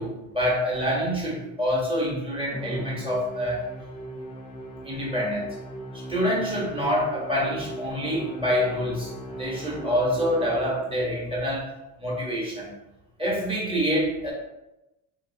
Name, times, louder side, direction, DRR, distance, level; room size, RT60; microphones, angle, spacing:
voice 1, 0.0-3.7 4.8-5.5 6.1-9.1 9.4-11.7 12.0-12.7 13.2-14.3, equal, 10° right, -4 dB, 1.2 m, -26 dB
Musical instrument, 2.5-11.1, right 1 dB, 10° left, 0.7 m, -38 dB
3.1 x 2.6 x 2.7 m, 0.96 s
supercardioid pair, 100°, 43 cm